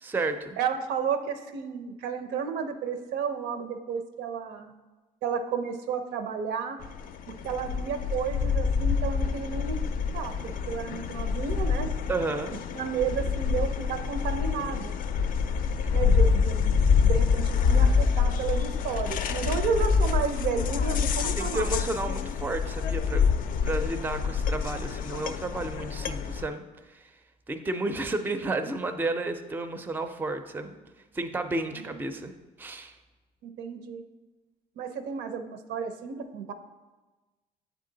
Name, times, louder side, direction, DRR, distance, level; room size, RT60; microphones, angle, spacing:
voice 1, 0.0-0.6 12.1-12.5 21.4-23.3 23.6-27.1 27.5-30.7 31.1-32.3 32.6-33.0, right 2 dB, 10° right, 8 dB, 0.4 m, -32 dB
voice 2, 0.6-4.7 5.2-6.8 7.4-9.8 10.1-11.9 12.7-14.9 15.9-16.7 17.0-21.7 33.4-34.0 34.8-36.5, right 6 dB, 85° right, 8 dB, 0.6 m, -32 dB
sound 1, 6.8-26.4, left 6 dB, 55° left, 0.4 m, -26 dB
8.2 x 3.7 x 3.8 m, 1.2 s
cardioid pair, 110°, 17 cm